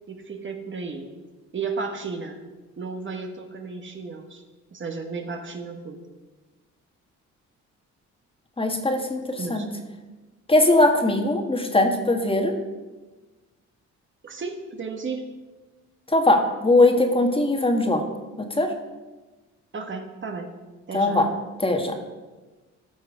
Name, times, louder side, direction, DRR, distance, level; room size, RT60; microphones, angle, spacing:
voice 1, 0.1-1.1 1.5-2.4 2.8-4.4 4.7-6.0 9.3-9.7 14.2-15.3 19.7-20.5 20.9-21.4, right 4 dB, 40° right, 5 dB, 1.3 m, -33 dB
voice 2, 8.6-9.7 10.5-12.5 16.1-18.0 18.4-18.7 20.9-21.3 21.6-22.0, left 2 dB, 20° left, 4 dB, 1.5 m, -20 dB
14.0 x 6.1 x 5.0 m, 1.2 s
cardioid pair, 90°, 30 cm